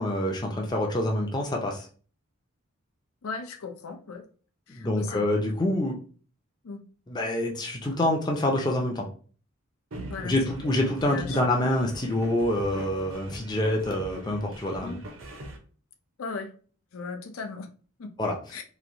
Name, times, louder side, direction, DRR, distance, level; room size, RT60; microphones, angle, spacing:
voice 1, 0.0-1.9 4.7-6.0 7.1-9.1 10.2-15.0 18.2-18.4, left 1 dB, 20° left, 0.5 m, -26 dB
voice 2, 3.2-4.3 4.7-5.2 6.6-6.8 10.1-10.4 11.0-11.4 14.8-15.0 16.2-16.5 16.9-17.7 18.0-18.1 18.5-18.6, left 4 dB, 80° left, 0.5 m, -36 dB
sound 1, 9.9-15.6, right 1 dB, 70° right, 0.7 m, -42 dB
3.1 x 2.6 x 2.6 m
head